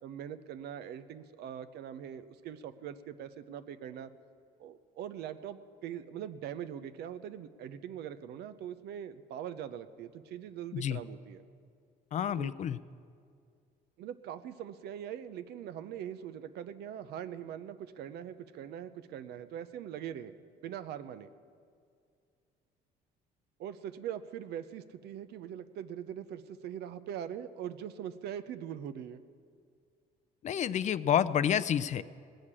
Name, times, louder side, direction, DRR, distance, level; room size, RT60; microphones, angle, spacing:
voice 1, 0.0-4.1 4.6-11.4 12.4-12.5 14.0-20.3 20.6-21.3 23.6-29.2, right 9 dB, 75° right, 11 dB, 0.7 m, -42 dB
voice 2, 12.1-12.8 30.4-32.0, left 9 dB, 45° left, 16 dB, 0.4 m, -29 dB
18.5 x 6.5 x 8.7 m, 2.2 s
cardioid pair, 110°, 17 cm